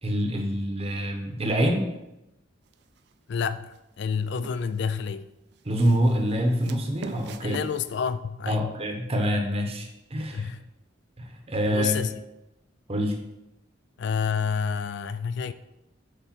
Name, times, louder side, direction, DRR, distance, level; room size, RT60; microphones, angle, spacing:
voice 1, 0.0-1.9 5.6-7.6 8.5-10.5 11.2-12.0 12.9-13.2, equal, 30° right, 0.9 m, -26 dB
sound 1, 2.7-3.1 3.7-4.9 5.5-8.1, right 4 dB, 60° right, 0.5 m, -44 dB
voice 2, 3.3-5.3 7.4-8.7 10.3-10.6 11.7-12.1 14.0-15.5, left 6 dB, 60° left, 0.4 m, -29 dB
8.3 x 3.4 x 5.9 m
head